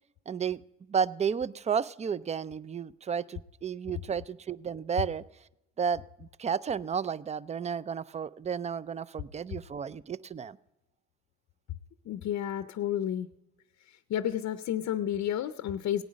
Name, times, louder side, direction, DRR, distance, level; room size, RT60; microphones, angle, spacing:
voice 1, 0.3-0.6 0.9-5.2 5.8-10.6, right 7 dB, 25° right, 20 dB, 0.4 m, -32 dB
voice 2, 12.1-13.3 13.9-16.0, left 10 dB, 60° left, 11 dB, 0.6 m, -31 dB
17.5 x 9.4 x 5.1 m, 0.96 s
cardioid pair, 90°, 30 cm